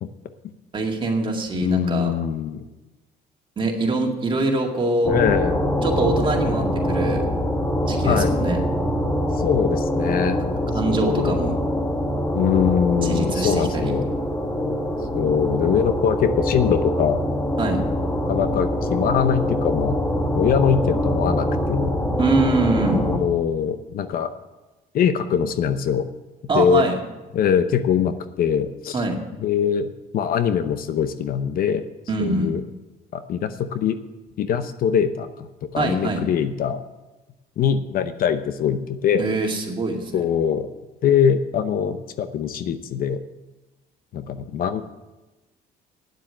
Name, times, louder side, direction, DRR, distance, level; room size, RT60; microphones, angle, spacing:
voice 1, 0.7-2.1 3.6-5.1 5.8-7.3 7.9-8.6 10.7-11.6 13.0-13.9 17.6-17.8 22.2-23.1 26.5-27.0 28.9-29.2 32.1-32.5 35.8-36.2 39.2-40.2, right 2 dB, 30° right, 1 dB, 2.2 m, -24 dB
voice 2, 1.5-2.6 5.1-5.6 8.0-8.4 9.3-10.4 10.9-11.5 12.3-14.1 15.1-17.2 18.3-20.0 20.3-22.0 23.0-24.3 24.9-26.1 26.5-26.9 27.3-29.0 29.4-31.8 32.2-32.6 33.1-34.0 34.4-36.8 37.6-39.3 40.1-40.7 41.0-43.2 44.1-44.8, left 8 dB, 60° left, 11 dB, 0.7 m, -22 dB
sound 1, 5.0-23.2, equal, 15° left, 1.4 m, -24 dB
9.5 x 7.5 x 8.7 m, 1.1 s
cardioid pair, 110°, 17 cm